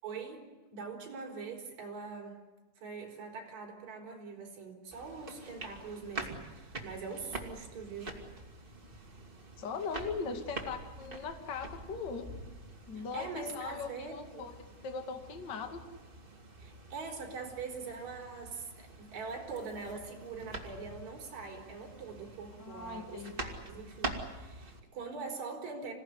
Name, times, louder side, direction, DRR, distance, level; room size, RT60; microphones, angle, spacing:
voice 1, 0.0-0.4 0.7-2.4 2.8-8.2 12.9-14.5 16.6-25.9, right 4 dB, 35° right, 0 dB, 5.5 m, -43 dB
sound 1, 4.9-24.8, right 2 dB, 90° right, 0.4 m, -46 dB
voice 2, 9.6-12.3 12.9-14.5 14.8-15.8 22.6-23.3, left 5 dB, 40° left, 5 dB, 1.5 m, -39 dB
27.0 x 17.5 x 9.7 m, 1.2 s
omnidirectional pair, 5.7 m